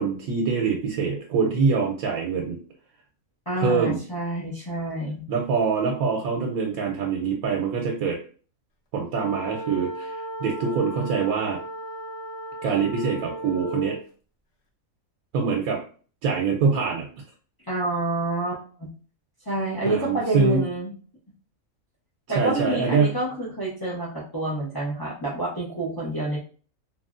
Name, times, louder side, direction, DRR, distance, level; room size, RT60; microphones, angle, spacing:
voice 1, 0.0-2.6 3.6-4.0 5.3-8.2 8.9-11.6 12.6-14.0 15.3-15.8 16.2-17.1 19.8-20.6 22.3-23.1, right 5 dB, 80° right, 0 dB, 1.0 m, -24 dB
voice 2, 3.5-5.2 17.7-18.9 19.5-20.9 22.3-26.4, right 2 dB, 35° left, -6 dB, 0.3 m, -28 dB
sound 1, 9.1-14.0, right 1 dB, 60° left, 0.8 m, -35 dB
3.0 x 2.6 x 2.4 m, 0.40 s
omnidirectional pair, 1.5 m